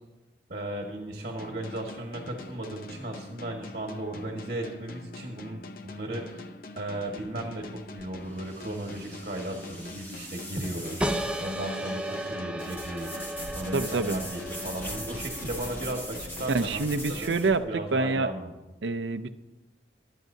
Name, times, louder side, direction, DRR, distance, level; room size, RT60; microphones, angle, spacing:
voice 1, 0.5-13.2 13.5-16.8 17.1-18.5, right 1 dB, 45° right, 1 dB, 1.5 m, -36 dB
sound 1, 1.4-18.0, left 2 dB, 50° left, 0.7 m, -45 dB
sound 2, 8.0-17.6, equal, 10° left, 1.6 m, -41 dB
sound 3, 11.0-16.2, right 1 dB, 5° right, 0.5 m, -35 dB
voice 2, 13.7-14.1 16.5-18.3 18.8-19.3, right 3 dB, 75° right, 9 dB, 0.6 m, -27 dB
25.5 x 9.3 x 2.7 m, 1.1 s
head